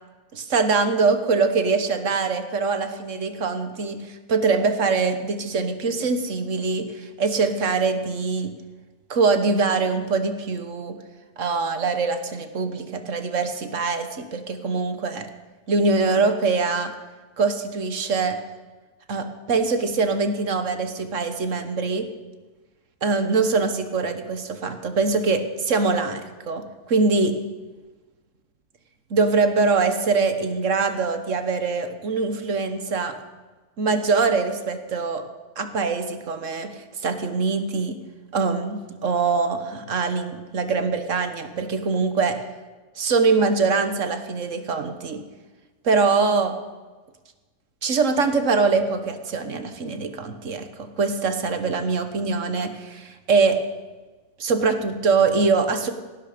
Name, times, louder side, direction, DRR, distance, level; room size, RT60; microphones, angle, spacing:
voice 1, 0.3-8.5 9.1-11.0 11.4-15.3 15.7-16.9 17.4-18.4 19.1-22.1 23.0-26.2 26.5-27.4 29.1-33.2 33.8-35.2 35.6-38.0 38.3-42.4 43.0-45.2 45.8-46.6 47.8-53.6 54.4-55.9, right 4 dB, 55° right, 8 dB, 1.4 m, -23 dB
17.5 x 11.5 x 5.1 m, 1.3 s
omnidirectional pair, 1.6 m